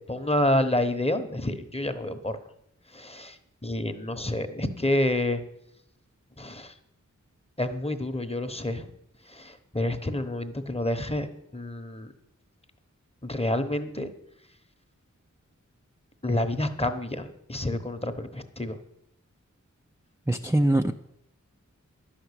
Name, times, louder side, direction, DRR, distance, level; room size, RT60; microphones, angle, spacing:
voice 1, 0.0-2.4 2.9-5.4 6.4-6.8 7.6-8.9 9.2-11.3 11.5-12.1 13.2-14.1 16.2-18.8, left 1 dB, 20° left, 8 dB, 1.0 m, -28 dB
voice 2, 20.3-20.9, right 1 dB, 10° right, 4 dB, 0.5 m, -22 dB
11.5 x 6.0 x 8.3 m, 0.78 s
wide cardioid pair, 65°, 30 cm